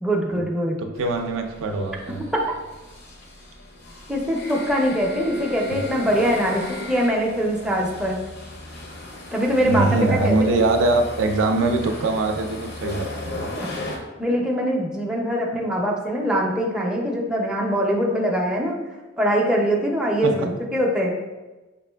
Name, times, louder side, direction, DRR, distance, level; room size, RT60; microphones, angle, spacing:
voice 1, 0.0-0.8 2.3-2.4 4.1-8.2 9.3-9.9 10.2-10.6 13.6-13.7 14.2-18.8 19.2-21.1, equal, 5° right, -2 dB, 0.4 m, -23 dB
voice 2, 0.8-2.2 9.6-13.5 20.2-20.3, right 2 dB, 75° right, 4 dB, 0.4 m, -22 dB
sound 1, 1.0-14.0, left 2 dB, 55° left, 0.6 m, -36 dB
5.1 x 2.4 x 2.2 m, 1.1 s
head